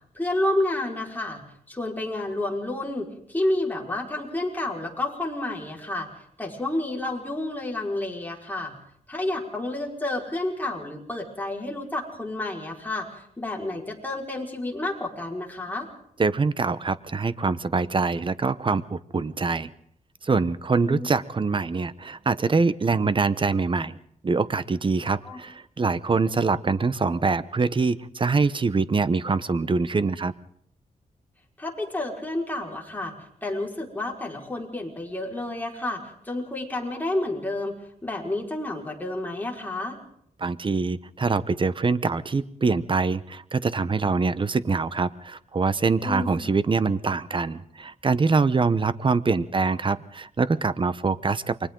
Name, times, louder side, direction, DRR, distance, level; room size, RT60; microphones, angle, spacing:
voice 1, 0.1-6.1 6.4-8.7 9.1-13.1 13.4-15.9 20.8-21.1 25.2-25.4 31.6-33.1 33.4-37.7 38.0-40.0 46.0-46.5, left 1 dB, 10° left, -1 dB, 5.0 m, -30 dB
voice 2, 16.2-19.7 20.2-24.0 24.2-30.3 40.4-51.7, right 4 dB, 35° right, 15 dB, 1.0 m, -24 dB
29.0 x 24.0 x 3.9 m, 0.69 s
cardioid pair, 90°, 15 cm